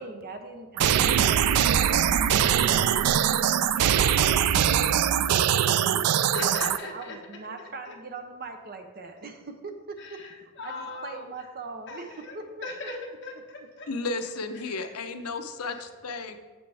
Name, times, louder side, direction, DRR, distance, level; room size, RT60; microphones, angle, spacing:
voice 1, 0.0-1.5 1.8-6.3 6.8-12.9 15.1-15.2, right 3 dB, 45° right, 6 dB, 0.8 m, -41 dB
sound 1, 0.8-6.8, right 9 dB, 80° right, 0.3 m, -22 dB
voice 2, 6.3-7.2 7.9-8.0 10.0-11.3 11.9-12.4 12.6-13.9 14.6-14.7, left 3 dB, 50° left, -2 dB, 1.4 m, -39 dB
voice 3, 13.9-16.4, left 3 dB, 80° left, 7 dB, 0.7 m, -33 dB
8.0 x 6.8 x 3.4 m, 1.3 s
head